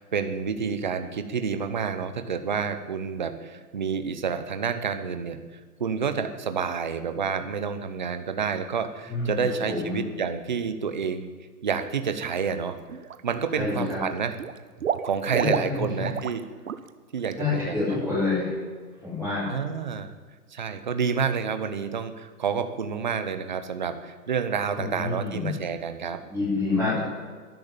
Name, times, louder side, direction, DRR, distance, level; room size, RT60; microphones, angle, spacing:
voice 1, 0.0-11.3 11.6-12.8 13.2-14.4 15.0-16.5 17.1-18.1 19.4-20.1 20.5-26.2 26.8-27.0, right 6 dB, 30° right, 10 dB, 0.8 m, -29 dB
voice 2, 9.1-9.4 9.7-10.0 13.5-14.0 15.4-16.1 17.4-18.5 19.0-19.6 24.7-25.5 26.3-27.0, left 3 dB, 5° left, -14 dB, 5.0 m, -28 dB
Water / Liquid, 12.2-12.5 12.9-13.6 13.9-16.4 16.7-16.9 17.2-17.3, right 8 dB, 60° right, 0.9 m, -31 dB
13.0 x 11.0 x 9.0 m, 1.5 s
hypercardioid pair, 180°, 46 cm